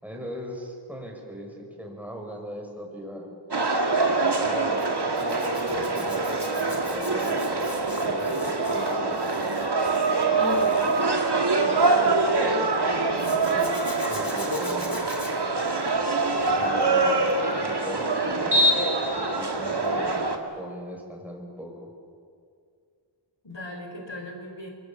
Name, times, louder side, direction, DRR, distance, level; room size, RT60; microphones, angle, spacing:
voice 1, 0.0-3.3 4.1-4.9 5.2-7.7 8.0-9.5 14.0-15.1 16.6-17.2 17.5-18.6 19.1-20.3 20.6-21.9, equal, 5° right, 1 dB, 5.7 m, -39 dB
sound 1, 3.5-20.4, right 3 dB, 55° right, 2.3 m, -24 dB
Zipper (clothing), 4.8-12.2 13.1-16.8 17.2-17.5 19.8-20.0 20.3-20.4, left 2 dB, 45° left, 4.3 m, -44 dB
voice 2, 10.3-11.0 11.5-13.8 23.4-24.7, left 2 dB, 65° left, 3 dB, 4.9 m, -35 dB
28.0 x 22.5 x 7.1 m, 2.3 s
wide cardioid pair, 50°, 48 cm